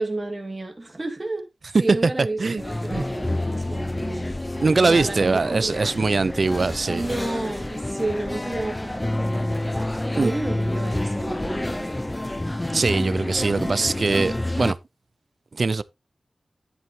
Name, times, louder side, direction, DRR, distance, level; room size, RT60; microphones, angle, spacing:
voice 1, 0.0-1.5 1.8-4.3 4.8-6.1 6.9-9.6 10.1-12.0, right 2 dB, 30° right, 2.4 m, -31 dB
sound 1, 2.6-14.7, left 1 dB, 20° left, 0.6 m, -28 dB
voice 2, 4.6-7.1 10.2-10.3 12.7-14.8 15.6-15.8, right 3 dB, 60° right, 0.5 m, -22 dB
10.5 x 8.0 x 2.9 m
wide cardioid pair, 75°, 0 cm